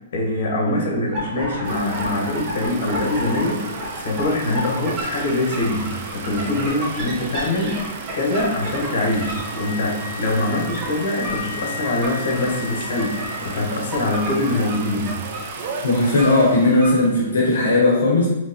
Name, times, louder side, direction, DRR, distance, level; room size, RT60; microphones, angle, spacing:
voice 1, 0.0-13.1 13.4-15.1, left 2 dB, 65° left, -1 dB, 1.1 m, -24 dB
sound 1, 1.1-16.9, equal, 25° right, 1.0 m, -32 dB
sound 2, 1.6-17.5, right 4 dB, 50° right, 0.5 m, -35 dB
Wind instrument woodwind instrument, 8.0-14.0, left 6 dB, 35° left, 0.6 m, -36 dB
voice 2, 15.8-18.3, left 2 dB, 80° left, -2 dB, 0.8 m, -17 dB
3.8 x 2.9 x 2.7 m, 0.96 s
hypercardioid pair, 155°, 0 cm